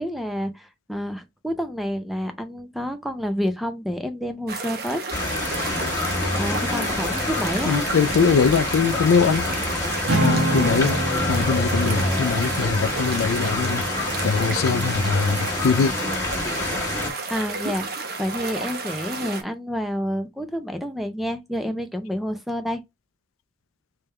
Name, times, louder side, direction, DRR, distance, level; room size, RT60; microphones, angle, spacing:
voice 1, 0.0-5.0 6.3-7.9 17.3-22.8, equal, ahead, 0.5 m, -29 dB
sound 1, 4.5-19.4, right 3 dB, 50° right, 0.9 m, -32 dB
sound 2, 5.1-17.1, left 2 dB, 15° left, 1.2 m, -27 dB
voice 2, 7.7-9.4 10.2-11.0 11.3-13.8 14.2-15.9, left 5 dB, 90° left, 0.4 m, -22 dB
Acoustic guitar / Strum, 10.1-14.5, right 1 dB, 85° right, 1.1 m, -28 dB
3.4 x 3.4 x 3.2 m
head